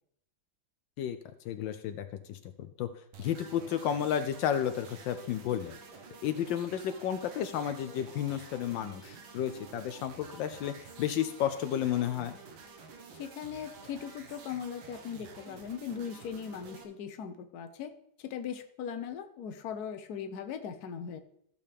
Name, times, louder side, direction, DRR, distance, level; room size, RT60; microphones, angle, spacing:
voice 1, 1.4-2.9 3.2-5.8 6.2-12.4, left 10 dB, 80° left, 9 dB, 1.3 m, -32 dB
sound 1, 3.1-16.8, right 4 dB, 85° right, 1.9 m, -50 dB
voice 2, 13.2-17.9 18.2-21.2, left 7 dB, 60° left, 8 dB, 1.2 m, -39 dB
14.5 x 6.7 x 3.4 m, 0.72 s
omnidirectional pair, 2.1 m